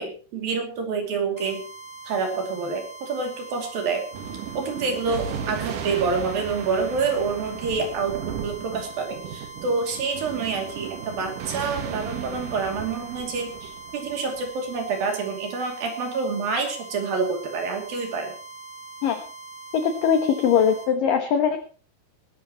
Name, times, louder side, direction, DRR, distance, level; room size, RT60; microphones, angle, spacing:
voice 1, 0.0-1.6 2.1-4.0 4.5-18.4, right 4 dB, 50° right, 3 dB, 3.9 m, -27 dB
sound 1, 1.4-20.9, right 3 dB, 60° left, 5.4 m, -42 dB
Thunder, 4.1-15.0, right 8 dB, 85° right, 1.8 m, -36 dB
voice 2, 19.7-21.6, left 7 dB, 80° left, 7 dB, 1.9 m, -21 dB
20.5 x 12.5 x 3.0 m, 0.39 s
omnidirectional pair, 5.8 m